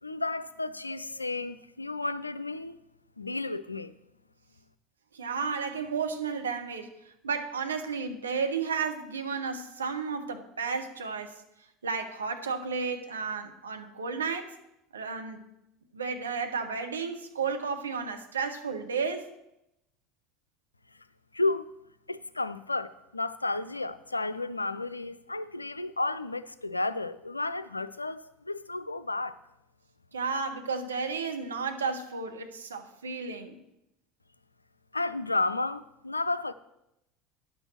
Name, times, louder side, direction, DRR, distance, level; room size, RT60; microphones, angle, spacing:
voice 1, 0.0-2.8 3.2-3.9 21.3-21.7 22.1-29.4 34.9-36.5, left 2 dB, 85° left, 0.3 m, -32 dB
voice 2, 5.1-6.9 7.2-11.4 11.8-14.5 14.9-15.4 15.9-19.3 30.1-33.6, right 5 dB, 75° right, 0.9 m, -32 dB
10.0 x 6.1 x 6.3 m
figure-of-eight pair, 70°, 0 cm